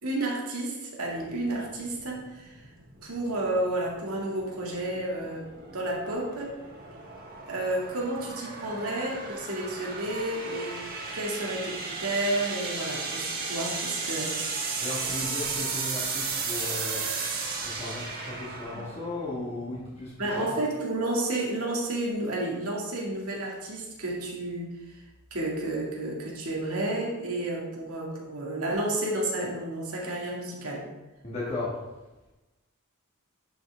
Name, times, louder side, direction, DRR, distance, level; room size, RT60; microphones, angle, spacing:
voice 1, 0.0-2.6 3.0-6.6 7.5-10.8 11.1-14.3 20.2-25.0 25.3-30.9, right 1 dB, 75° right, -2 dB, 2.0 m, -31 dB
sound 1, 1.1-20.2, right 4 dB, 40° right, 1.4 m, -35 dB
voice 2, 14.8-17.0 17.6-20.7 31.2-31.7, left 2 dB, 30° left, -8 dB, 1.6 m, -36 dB
10.5 x 5.8 x 3.4 m, 1.1 s
head